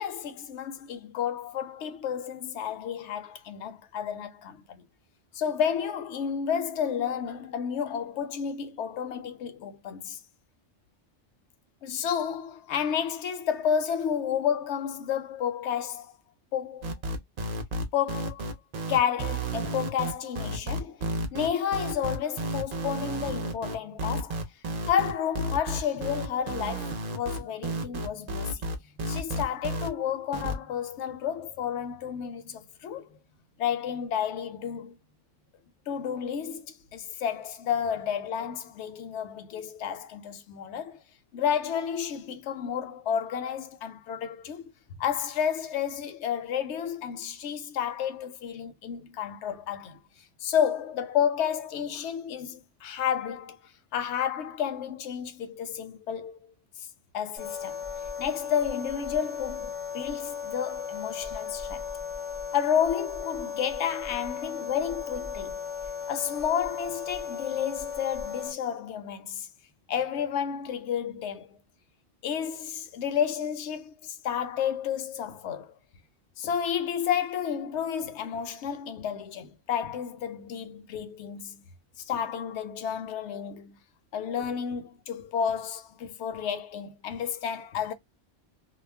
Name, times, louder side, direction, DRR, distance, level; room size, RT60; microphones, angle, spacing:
voice 1, 0.0-4.8 5.3-10.2 11.8-16.1 16.5-16.9 17.9-18.4 18.9-24.4 24.9-28.7 29.0-33.1 33.6-35.0 35.9-41.0 41.3-44.6 45.0-50.0 50.4-53.6 53.9-56.4 57.1-57.8 58.2-61.9 62.5-65.6 66.1-69.5 69.9-71.6 72.2-75.7 76.4-81.7 82.0-83.8 84.1-87.9, left 8 dB, 70° left, 0.8 m, -31 dB
sound 1, 16.8-29.9 30.3-30.6, right 1 dB, 55° right, 0.4 m, -32 dB
sound 2, 57.4-68.5, left 6 dB, 40° left, 0.4 m, -36 dB
2.3 x 2.0 x 3.2 m
omnidirectional pair, 1.3 m